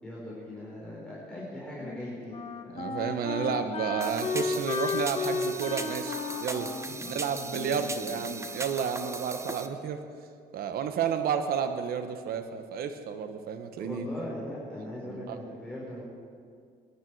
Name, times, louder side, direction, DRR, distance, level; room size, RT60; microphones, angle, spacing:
voice 1, 0.0-2.4 2.6-2.8 7.0-7.1 13.7-16.0, left 1 dB, 5° left, -6 dB, 4.6 m, -39 dB
Wind instrument woodwind instrument, 1.3-8.6, left 4 dB, 35° left, 1.4 m, -35 dB
voice 2, 2.7-6.7 7.1-10.0 10.5-14.1 15.1-15.4, right 7 dB, 65° right, 8 dB, 1.2 m, -31 dB
sound 1, 4.0-9.7, right 3 dB, 15° right, 0.9 m, -39 dB
25.0 x 11.5 x 4.7 m, 2.2 s
cardioid pair, 110°, 17 cm